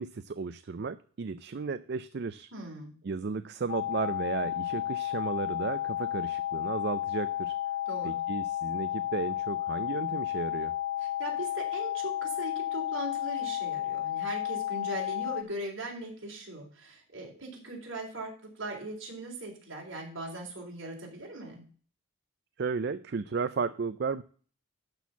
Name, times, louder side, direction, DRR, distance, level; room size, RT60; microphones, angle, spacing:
voice 1, 0.0-2.5 3.0-7.6 8.0-10.7 22.6-24.2, right 5 dB, 55° right, 12 dB, 0.4 m, -34 dB
voice 2, 2.5-2.9 7.9-8.2 11.2-18.3 18.6-21.7, right 2 dB, 70° right, -1 dB, 3.9 m, -39 dB
sound 1, 3.7-15.4, left 12 dB, 65° left, 0.6 m, -32 dB
12.0 x 4.4 x 7.1 m, 0.43 s
head